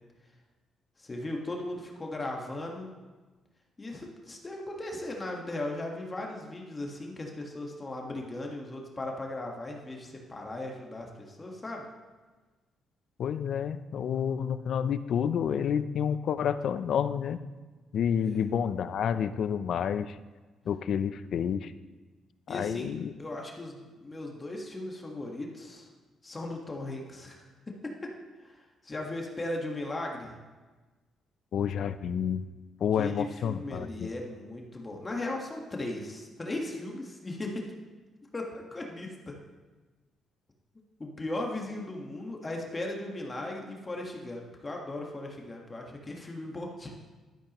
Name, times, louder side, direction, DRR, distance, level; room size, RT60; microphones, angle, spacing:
voice 1, 1.0-2.9 3.8-11.9 18.2-18.4 22.5-22.9 23.2-25.9 26.2-27.5 27.8-27.9 28.4-30.3 33.0-37.7 38.3-39.4 41.0-46.9, left 2 dB, 25° left, 0 dB, 1.5 m, -37 dB
voice 2, 13.2-17.4 17.9-20.2 20.7-21.7 22.5-23.1 31.5-32.4 32.8-34.1, left 8 dB, 65° left, 13 dB, 0.5 m, -29 dB
12.0 x 10.5 x 3.0 m, 1.3 s
cardioid pair, 90°, 0 cm